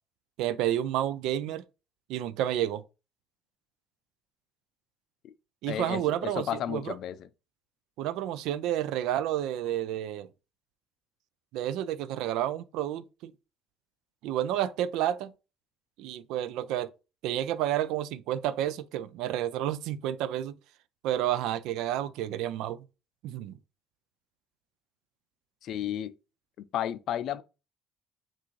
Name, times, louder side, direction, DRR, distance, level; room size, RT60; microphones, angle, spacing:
voice 1, 0.4-1.6 2.1-2.8 5.6-6.9 8.0-10.3 11.5-13.3 14.2-15.3 16.0-16.9 17.2-20.5 21.0-22.8 23.2-23.6, right 12 dB, 80° right, 0.3 m, -30 dB
voice 2, 5.7-7.3 25.6-26.1 26.6-27.4, left 10 dB, 65° left, 0.4 m, -33 dB
5.9 x 2.5 x 3.1 m
cardioid pair, 95°, 0 cm